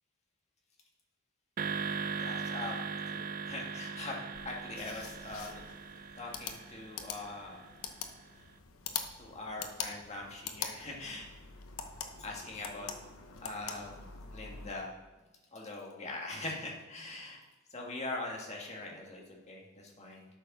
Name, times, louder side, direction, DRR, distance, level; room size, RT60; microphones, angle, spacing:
sound 1, 1.6-7.9, right 6 dB, 45° right, 0.5 m, -39 dB
voice 1, 2.1-4.2 4.4-5.6 6.2-7.6 9.2-11.3 12.2-12.9 13.4-14.9 15.5-17.4 17.7-20.3, left 2 dB, 30° left, -1 dB, 1.8 m, -42 dB
sound 2, 4.3-14.7, left 6 dB, 85° left, 0.9 m, -44 dB
8.8 x 6.6 x 6.0 m, 1.2 s
head